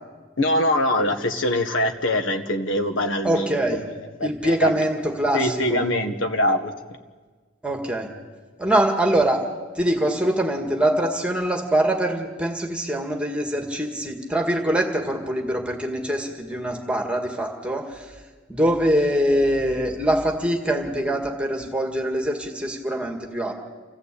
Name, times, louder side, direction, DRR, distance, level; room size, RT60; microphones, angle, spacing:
voice 1, 0.4-3.8 4.2-4.7 5.3-6.7, left 1 dB, 70° left, 6 dB, 1.7 m, -23 dB
voice 2, 3.2-3.8 4.2-5.9 7.6-8.1 8.6-9.4 9.8-18.1 18.5-23.5, right 1 dB, 5° right, 2 dB, 2.0 m, -23 dB
27.5 x 15.5 x 8.5 m, 1.4 s
head